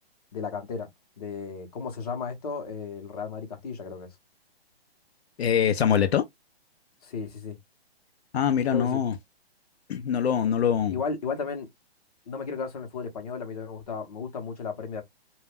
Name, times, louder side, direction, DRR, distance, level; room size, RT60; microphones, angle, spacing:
voice 1, 0.3-0.9 1.2-4.1 7.0-7.6 8.7-9.0 10.9-11.7 12.3-15.0, left 5 dB, 35° left, 0.8 m, -34 dB
voice 2, 5.4-6.2 8.3-9.1 9.9-10.9, left 8 dB, 75° left, 0.6 m, -23 dB
2.2 x 2.1 x 3.3 m
hypercardioid pair, 165°, 32 cm